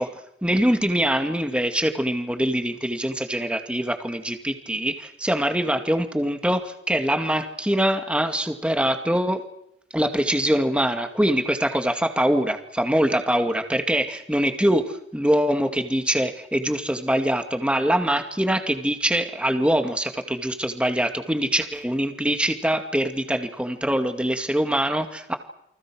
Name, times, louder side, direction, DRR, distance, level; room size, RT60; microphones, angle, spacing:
voice 1, 0.4-9.4 9.9-25.4, right 1 dB, 5° right, 6 dB, 2.2 m, -23 dB
29.5 x 24.5 x 6.3 m, 0.77 s
head